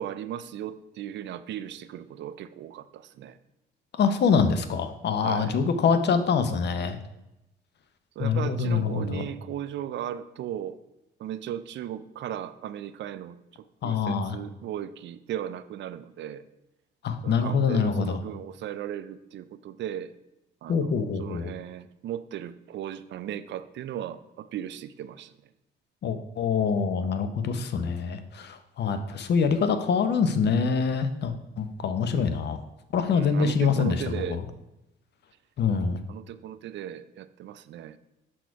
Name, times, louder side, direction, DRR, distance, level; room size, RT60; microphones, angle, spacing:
voice 1, 0.0-3.4 5.2-5.5 8.2-10.8 11.2-13.4 13.8-16.4 17.2-20.1 20.6-25.3 33.1-34.4 36.1-38.0, right 10 dB, 65° right, 14 dB, 0.4 m, -36 dB
voice 2, 4.0-7.0 8.2-9.2 13.8-14.4 17.0-18.2 20.7-21.5 26.0-32.6 32.9-34.4 35.6-36.0, left 5 dB, 60° left, 10 dB, 0.7 m, -25 dB
6.1 x 4.3 x 4.6 m, 0.94 s
cardioid pair, 90°, 20 cm